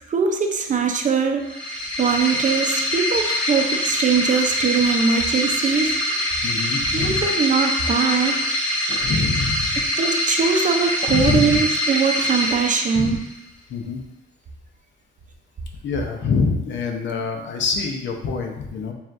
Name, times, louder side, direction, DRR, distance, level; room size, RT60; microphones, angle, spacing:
voice 1, 0.1-1.4 2.0-5.9 6.9-8.3 10.0-13.2, right 5 dB, 40° right, 4 dB, 0.6 m, -21 dB
sound 1, 1.4-13.4, left 1 dB, 5° left, 1.1 m, -24 dB
voice 2, 3.1-3.7 6.4-7.2 8.9-9.9 11.1-11.6 12.9-13.2 13.7-14.0 15.8-18.9, left 4 dB, 70° left, 2 dB, 0.7 m, -25 dB
7.0 x 2.5 x 2.5 m, 0.86 s
cardioid pair, 90°, 20 cm